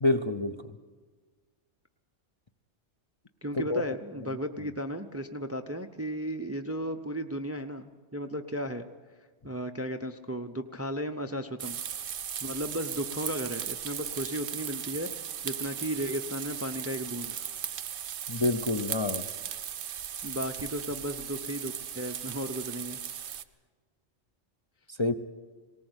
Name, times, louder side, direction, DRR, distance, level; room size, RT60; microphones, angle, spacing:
voice 1, 0.0-0.5 3.7-3.8 18.3-19.3 25.0-25.1, left 2 dB, 30° left, 5 dB, 0.6 m, -27 dB
voice 2, 3.4-8.9 9.4-11.8 12.4-17.4 20.2-23.0, equal, 15° right, 7 dB, 0.5 m, -35 dB
sound 1, 11.6-23.4, right 9 dB, 70° right, 1.0 m, -37 dB
19.0 x 18.5 x 8.0 m, 1.5 s
omnidirectional pair, 1.2 m